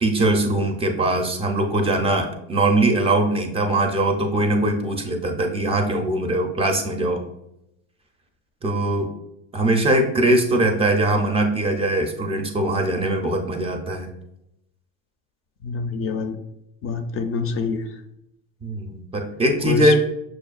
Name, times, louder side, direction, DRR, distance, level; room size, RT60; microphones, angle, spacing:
voice 1, 0.0-7.2 8.6-9.1 9.5-14.1 18.6-20.0, right 1 dB, 15° right, 4 dB, 0.4 m, -21 dB
voice 2, 15.6-16.4 16.8-17.8 19.6-20.0, left 5 dB, 40° left, 7 dB, 0.4 m, -25 dB
6.2 x 2.2 x 2.4 m, 0.84 s
supercardioid pair, 110°, 33 cm